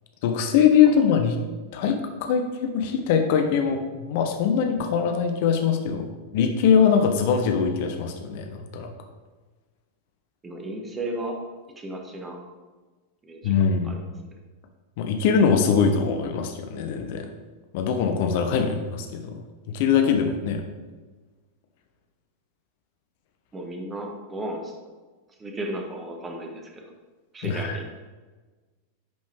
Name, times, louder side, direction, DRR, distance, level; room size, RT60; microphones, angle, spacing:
voice 1, 0.2-1.4 1.7-6.1 6.3-8.9 13.4-14.0 15.0-17.3 17.7-20.6 27.4-27.8, left 7 dB, 50° left, 5 dB, 0.8 m, -22 dB
voice 2, 10.4-11.4 11.8-12.4 13.2-13.5 13.9-14.0 23.5-24.7 25.4-26.6 27.3-28.0, right 1 dB, 20° right, 2 dB, 1.3 m, -34 dB
10.5 x 5.3 x 3.4 m, 1.3 s
figure-of-eight pair, 90°, 0 cm